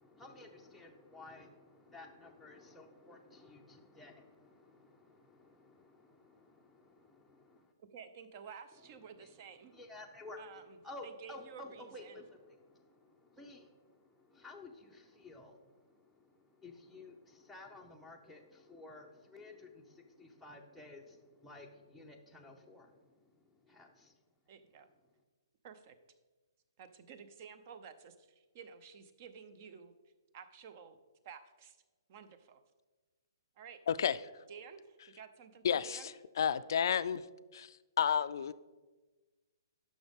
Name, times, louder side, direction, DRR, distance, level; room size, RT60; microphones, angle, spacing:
voice 1, 0.0-7.7 9.2-9.3 9.6-10.4 10.8-24.2, left 2 dB, ahead, -2 dB, 0.6 m, -54 dB
voice 2, 7.8-9.7 10.4-10.8 11.0-12.2 24.5-24.9 25.6-25.9 26.8-29.9 30.3-31.0 31.2-31.8 32.1-32.6 33.6-33.8 34.5-36.1, right 6 dB, 40° right, 11 dB, 0.6 m, -52 dB
voice 3, 35.6-36.0 36.4-37.2 37.5-37.7 38.0-38.5, left 8 dB, 65° left, 15 dB, 0.3 m, -31 dB
10.0 x 6.2 x 3.6 m, 1.2 s
hypercardioid pair, 155°, 2 cm